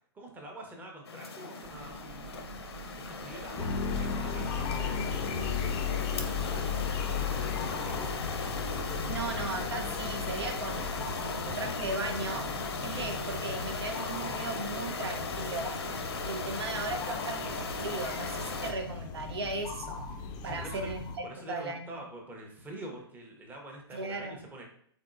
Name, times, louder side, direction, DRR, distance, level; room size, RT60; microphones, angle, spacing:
voice 1, 0.1-2.4 3.0-5.2 5.6-8.2 20.4-20.9 21.2-24.6, right 1 dB, 15° right, 0 dB, 0.8 m, -46 dB
sound 1, 1.0-18.7, left 4 dB, 80° left, 0.7 m, -37 dB
sound 2, 1.6-12.5, right 5 dB, 50° right, 0.4 m, -49 dB
sound 3, 3.6-21.2, left 6 dB, 30° left, 0.5 m, -36 dB
voice 2, 9.1-12.5 12.8-15.8 16.2-20.1 20.4-22.0 23.9-24.4, right 3 dB, 75° right, 6 dB, 0.7 m, -37 dB
3.6 x 3.6 x 2.5 m, 0.65 s
hypercardioid pair, 120°, 14 cm